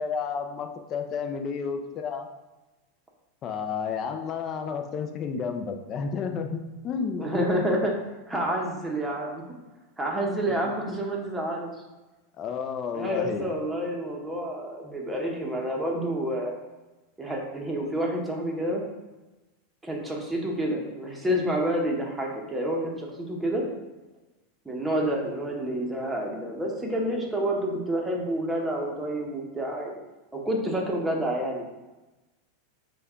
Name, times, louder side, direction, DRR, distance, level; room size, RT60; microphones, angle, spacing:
voice 1, 0.0-2.3 3.4-7.3 10.5-10.6 12.4-13.5, left 6 dB, 35° left, 6 dB, 0.5 m, -31 dB
voice 2, 7.2-8.0 8.3-9.4 10.0-11.7 12.9-16.5 17.2-18.8 19.8-23.6 24.6-30.0 30.3-31.6, right 1 dB, 5° right, -1 dB, 0.8 m, -28 dB
5.2 x 2.3 x 3.5 m, 1.1 s
hypercardioid pair, 115°, 0 cm